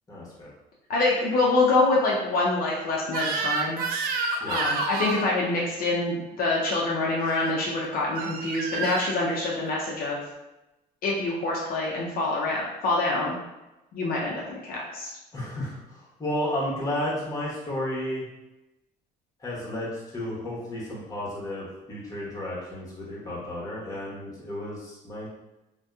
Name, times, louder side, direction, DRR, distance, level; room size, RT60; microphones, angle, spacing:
voice 1, 0.1-0.5 4.4-4.6 15.3-18.2 19.4-25.3, left 1 dB, 20° left, -6 dB, 1.0 m, -32 dB
voice 2, 0.9-3.8 4.5-10.2 11.0-13.4 13.9-15.1, left 2 dB, 60° left, -4 dB, 0.5 m, -25 dB
Crying sobbing / Screech, 3.1-5.3 7.2-7.5 8.2-9.1, right 4 dB, 60° right, 0.4 m, -29 dB
2.7 x 2.2 x 2.3 m, 0.97 s
cardioid pair, 110°, 17 cm